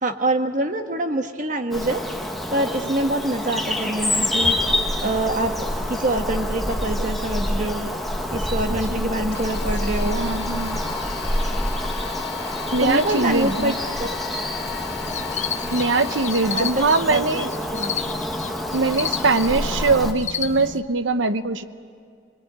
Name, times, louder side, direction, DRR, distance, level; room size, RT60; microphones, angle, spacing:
voice 1, 0.0-2.0 2.5-4.6 5.0-5.5 5.9-7.9 8.3-10.2 12.8-13.7 16.5-16.7 17.1-18.0, right 1 dB, 40° right, 6 dB, 1.4 m, -25 dB
Bird vocalization bird call bird song, 1.7-20.1, left 1 dB, ahead, 1.3 m, -27 dB
sound 1, 9.3-16.7, left 9 dB, 55° left, 1.6 m, -36 dB
voice 2, 10.0-10.8 12.7-13.7 15.7-17.5 18.7-21.6, right 3 dB, 80° right, 11 dB, 1.0 m, -22 dB
sound 2, 14.9-20.8, left 7 dB, 35° left, 0.7 m, -32 dB
25.5 x 21.0 x 9.7 m, 2.3 s
head